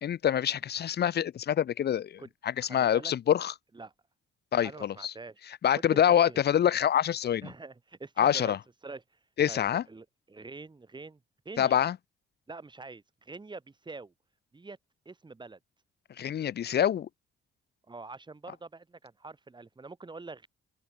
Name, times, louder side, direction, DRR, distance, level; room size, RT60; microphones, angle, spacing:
voice 1, 0.0-3.5 4.5-5.1 5.6-7.5 8.2-8.6 9.4-9.8 11.6-12.0 16.2-17.1, left 10 dB, 55° left, 1.1 m, -26 dB
voice 2, 2.6-3.1 3.7-3.9 4.6-5.4 5.7-6.4 7.4-8.6 8.8-9.0 9.5-11.2 11.5-11.8 12.5-14.1 14.5-14.8 15.1-15.6 17.9-20.5, right 3 dB, 20° right, 3.9 m, -45 dB
open air
cardioid pair, 90°, 20 cm